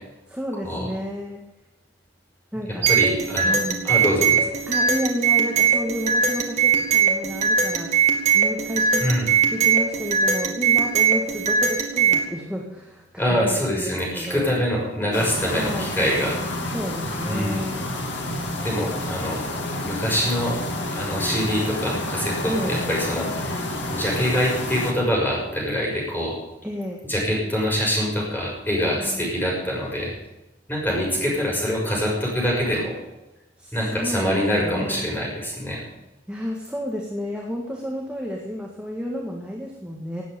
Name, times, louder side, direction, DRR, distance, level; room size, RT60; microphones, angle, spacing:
voice 1, 0.3-1.5 2.5-3.0 3.4-3.9 4.7-9.1 9.5-14.5 15.5-15.9 16.6-18.0 22.5-22.8 26.6-27.1 28.9-29.3 33.6-35.1 36.3-40.2, equal, 5° right, -2 dB, 1.8 m, -31 dB
sound 1, 2.8-12.3, right 6 dB, 40° right, 2.2 m, -21 dB
voice 2, 2.9-3.5 3.8-4.4 9.0-9.3 13.2-16.4 17.2-17.6 18.6-19.5 19.8-20.6 20.9-23.6 23.9-26.4 27.0-30.1 30.7-33.0 33.7-35.8, equal, 10° left, -3 dB, 6.5 m, -24 dB
sound 2, 15.1-24.9, left 1 dB, 65° left, 2.7 m, -29 dB
18.0 x 8.5 x 7.0 m, 1.0 s
head